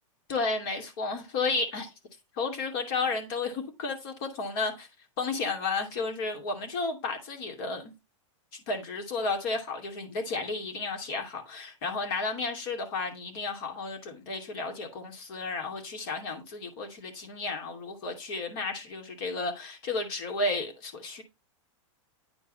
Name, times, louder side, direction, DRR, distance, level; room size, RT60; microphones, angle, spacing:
voice 1, 0.3-1.9 2.4-4.9 5.2-7.9 8.7-21.2, left 3 dB, 45° left, 2.6 m, -32 dB
9.8 x 4.5 x 4.2 m
supercardioid pair, 165°, 17 cm